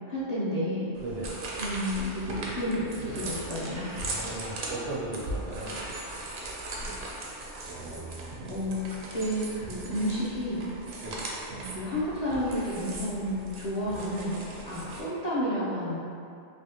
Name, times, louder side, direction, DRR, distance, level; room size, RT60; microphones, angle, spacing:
voice 1, 0.1-0.9 1.6-3.9 8.5-8.9 9.1-10.6 11.7-16.0, equal, 45° left, -9 dB, 0.6 m, -31 dB
sound 1, 0.9-15.0, right 2 dB, 60° right, 0.6 m, -38 dB
voice 2, 1.0-1.3 4.0-5.8 11.0-11.1, right 2 dB, 85° right, -5 dB, 1.0 m, -36 dB
3.3 x 2.4 x 2.8 m, 2.5 s
omnidirectional pair, 1.2 m